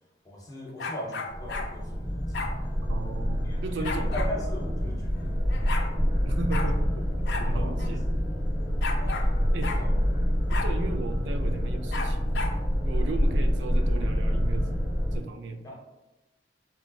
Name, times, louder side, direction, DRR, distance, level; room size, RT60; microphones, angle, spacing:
voice 1, 0.2-2.4 3.4-5.7 7.5-7.8 9.0-9.3 9.7-9.9 15.6-15.9, equal, 20° left, -2 dB, 0.6 m, -40 dB
sound 1, 0.8-1.7 2.3-2.5 3.8-4.3 5.2-5.3 5.5-5.9 6.5-6.7 7.3-7.5 7.8-7.9 8.8-9.3 9.6-9.8 10.5-10.7 11.9-12.6, left 3 dB, 65° left, 0.4 m, -33 dB
sound 2, 1.3-15.2, equal, 20° right, 0.9 m, -27 dB
voice 2, 2.8-4.1 6.2-8.0 9.5-9.8 10.5-12.2 12.9-14.8 15.1-15.6, right 3 dB, 75° right, 7 dB, 0.3 m, -36 dB
4.0 x 2.3 x 2.3 m, 1.0 s
head